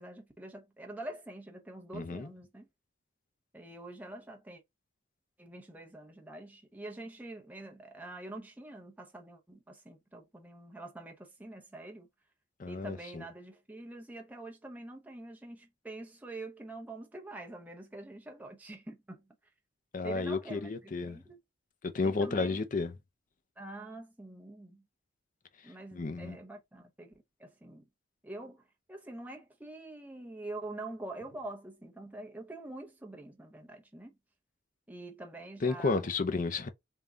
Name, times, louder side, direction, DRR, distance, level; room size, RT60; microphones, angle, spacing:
voice 1, 0.0-2.7 3.5-4.6 5.4-12.1 12.7-19.3 20.0-21.4 22.0-22.6 23.6-24.8 25.6-27.9 28.2-34.1 34.9-36.1, right 2 dB, 10° right, 0.7 m, -45 dB
voice 2, 1.9-2.3 12.6-13.2 19.9-21.2 21.8-22.9 25.9-26.4 35.6-36.7, left 3 dB, 45° left, 0.5 m, -32 dB
3.6 x 2.3 x 3.8 m
head